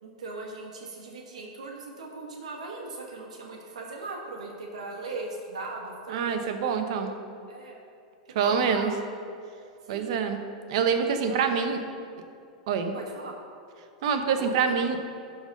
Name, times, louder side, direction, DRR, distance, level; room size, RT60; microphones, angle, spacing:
voice 1, 0.0-6.9 7.5-7.8 8.4-8.9 9.8-10.1 11.2-11.5 12.9-13.3 14.4-14.5, right 3 dB, 85° right, 0 dB, 1.3 m, -39 dB
voice 2, 6.1-7.1 8.3-8.9 9.9-10.4 10.7-11.8 12.7-12.9 14.0-15.0, right 6 dB, 65° right, 6 dB, 0.9 m, -25 dB
12.0 x 4.0 x 5.3 m, 2.5 s
hypercardioid pair, 120°, 4 cm